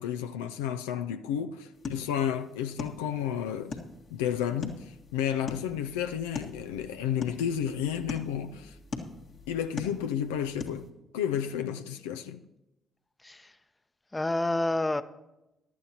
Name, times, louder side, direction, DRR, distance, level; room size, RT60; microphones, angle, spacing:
voice 1, 0.0-3.8 4.1-8.8 9.5-10.9 11.1-12.4, left 9 dB, 85° left, 0.4 m, -31 dB
sound 1, 1.7-10.9, left 4 dB, 60° left, 1.8 m, -42 dB
voice 2, 14.1-15.0, left 2 dB, 20° left, 0.7 m, -28 dB
17.0 x 11.5 x 2.9 m
hypercardioid pair, 45°, 0 cm